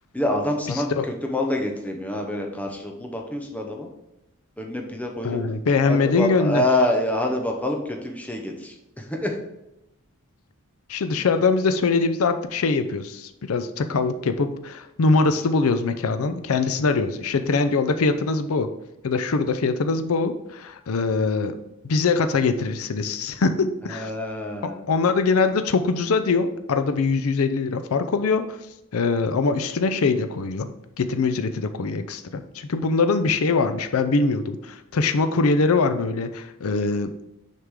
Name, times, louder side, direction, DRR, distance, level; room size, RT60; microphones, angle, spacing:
voice 1, 0.1-0.9 1.2-3.9 4.6-5.4 5.9-8.7 9.2-9.3 23.9-24.8, left 1 dB, 5° left, 1 dB, 0.8 m, -26 dB
voice 2, 0.7-1.1 5.2-6.7 10.9-18.7 19.0-21.6 21.8-24.1 24.6-28.6 28.9-30.7 31.0-37.1, left 4 dB, 70° left, 9 dB, 0.5 m, -23 dB
6.6 x 4.7 x 3.6 m, 0.89 s
head